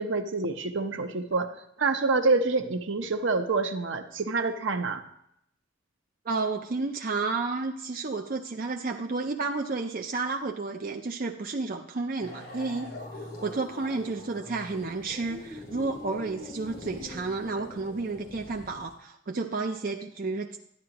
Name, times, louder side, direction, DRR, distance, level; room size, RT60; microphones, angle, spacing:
voice 1, 0.0-1.5 1.8-5.0, right 3 dB, 70° right, 6 dB, 0.8 m, -27 dB
voice 2, 6.3-12.9 13.2-20.6, right 3 dB, 45° right, 2 dB, 0.5 m, -31 dB
sound 1, 12.2-18.9, left 1 dB, 50° left, 3.4 m, -43 dB
12.0 x 10.0 x 3.0 m, 0.75 s
head